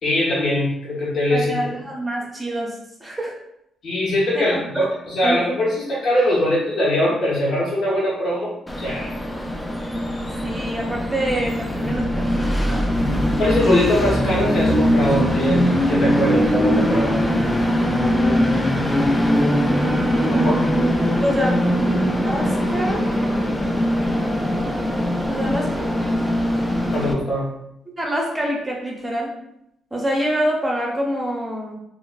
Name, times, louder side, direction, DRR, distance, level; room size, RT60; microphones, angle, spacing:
voice 1, 0.0-1.6 3.8-9.1 13.4-17.2 20.3-20.6 26.9-27.5, left 1 dB, 60° left, -6 dB, 0.8 m, -22 dB
voice 2, 1.3-2.7 3.0-3.3 4.3-4.9 5.2-5.4 10.4-13.2 19.5-23.1 25.3-25.9 28.0-29.3 29.9-31.7, right 1 dB, 15° right, -2 dB, 0.7 m, -26 dB
Train, 8.7-27.1, equal, 10° left, 0.3 m, -21 dB
3.1 x 2.0 x 2.3 m, 0.78 s
cardioid pair, 90°, 0 cm